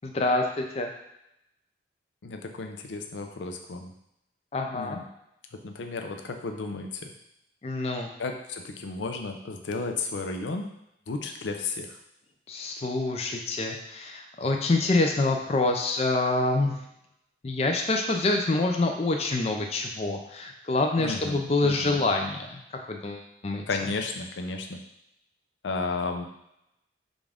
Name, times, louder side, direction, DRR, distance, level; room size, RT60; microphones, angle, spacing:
voice 1, 0.0-0.9 4.5-5.0 7.6-8.1 12.5-16.8 17.4-22.6 22.9-23.6, left 2 dB, 35° left, 3 dB, 0.4 m, -26 dB
voice 2, 2.2-3.9 4.7-5.0 5.6-7.0 8.2-10.7 11.1-12.0 21.0-22.0 23.7-24.8 25.6-26.3, left 3 dB, 90° left, 4 dB, 0.5 m, -33 dB
5.2 x 2.5 x 3.5 m, 0.82 s
head